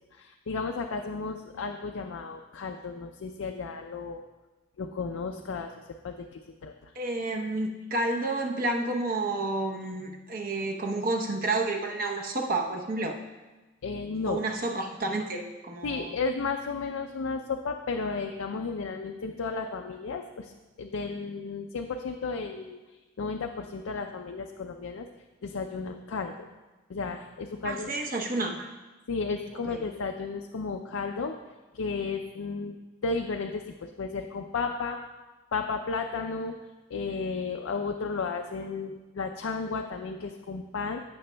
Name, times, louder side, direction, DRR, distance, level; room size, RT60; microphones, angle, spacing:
voice 1, 0.1-4.2 4.8-5.7 6.0-6.9 13.8-14.4 15.8-20.5 20.8-22.8 23.2-25.1 25.4-26.5 26.9-27.9 29.1-31.4 31.7-35.0 35.5-36.6 36.9-41.0, left 4 dB, 85° left, 4 dB, 0.5 m, -33 dB
voice 2, 7.0-13.2 14.3-16.1 27.6-28.7 29.7-29.8, right 2 dB, 45° right, 2 dB, 0.8 m, -30 dB
15.5 x 6.1 x 2.2 m, 1.2 s
head